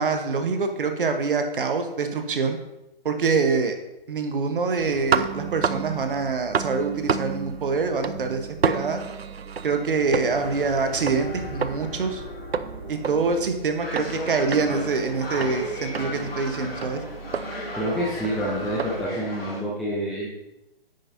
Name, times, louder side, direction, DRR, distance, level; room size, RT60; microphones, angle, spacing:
voice 1, 0.0-2.6 3.0-3.8 4.1-9.0 9.6-12.2 12.9-17.0, right 4 dB, 60° right, 6 dB, 1.2 m, -25 dB
sound 1, 4.8-19.1, right 6 dB, 90° right, 0.5 m, -31 dB
sound 2, 9.8-13.6, left 2 dB, 30° left, 2.0 m, -39 dB
sound 3, 13.8-19.6, left 1 dB, 75° left, 2.0 m, -35 dB
voice 2, 17.8-20.3, equal, ahead, -6 dB, 0.5 m, -28 dB
9.8 x 6.7 x 2.7 m, 0.91 s
figure-of-eight pair, 130°, 30 cm